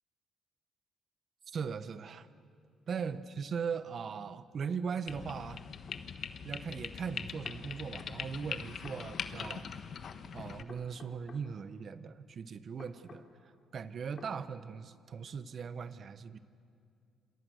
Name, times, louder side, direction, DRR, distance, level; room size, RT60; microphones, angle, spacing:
voice 1, 1.5-2.3 2.9-5.6 6.4-9.7 10.3-16.4, right 6 dB, 55° right, 13 dB, 1.1 m, -39 dB
sound 1, 5.1-10.6, left 7 dB, 60° left, 1.2 m, -42 dB
sound 2, 5.9-6.0 7.2-7.6 8.8-9.6 10.7-11.4 12.8-13.3 14.2-14.3, left 4 dB, 45° left, 3.8 m, -52 dB
27.5 x 27.0 x 6.6 m, 2.3 s
cardioid pair, 90°, 0 cm